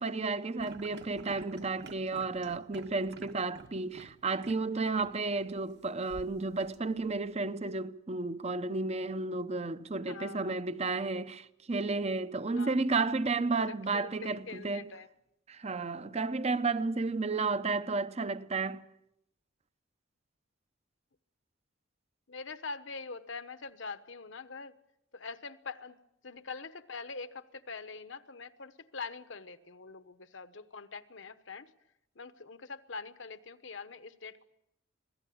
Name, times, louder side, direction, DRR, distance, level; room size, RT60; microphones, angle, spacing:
voice 1, 0.0-14.9 15.5-18.8, right 3 dB, 35° right, 0.8 m, -32 dB
sound 1, 0.6-4.1 4.4-4.5 4.9-5.1 6.1-7.2, right 3 dB, 55° right, 1.6 m, -49 dB
voice 2, 10.1-10.6 12.5-12.8 13.6-15.1 17.3-17.6 22.3-24.8 25.1-26.0 26.2-31.7 32.1-34.5, left 4 dB, 65° left, 1.1 m, -44 dB
26.0 x 17.5 x 8.6 m
head